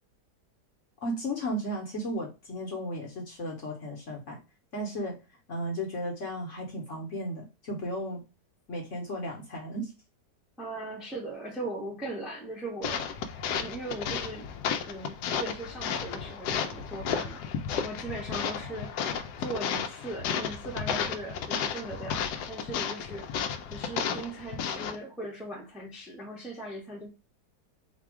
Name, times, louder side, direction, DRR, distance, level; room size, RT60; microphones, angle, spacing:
voice 1, 1.0-4.4 4.7-5.2 5.5-8.2 8.7-9.9, equal, 50° left, 1 dB, 1.1 m, -34 dB
voice 2, 10.6-13.1 13.6-14.5 14.9-17.4 17.8-18.9 19.4-23.2 23.7-27.1, right 2 dB, ahead, -1 dB, 0.7 m, -39 dB
sound 1, 12.8-25.0, left 7 dB, 75° left, 1.1 m, -33 dB
4.2 x 2.3 x 4.6 m, 0.29 s
omnidirectional pair, 1.9 m